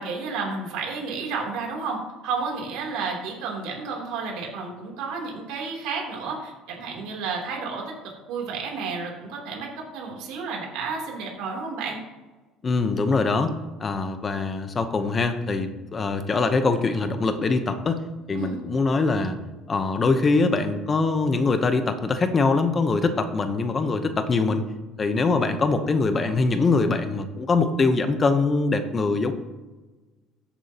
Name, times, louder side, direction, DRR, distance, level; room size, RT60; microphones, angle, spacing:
voice 1, 0.0-12.0 18.3-18.6, right 4 dB, 75° right, -1 dB, 3.1 m, -31 dB
voice 2, 12.6-13.5 13.8-18.0 18.3-19.4 19.7-24.7 25.0-29.3, left 3 dB, 25° left, 8 dB, 0.8 m, -23 dB
14.0 x 7.2 x 2.9 m, 1.2 s
cardioid pair, 120°, 0 cm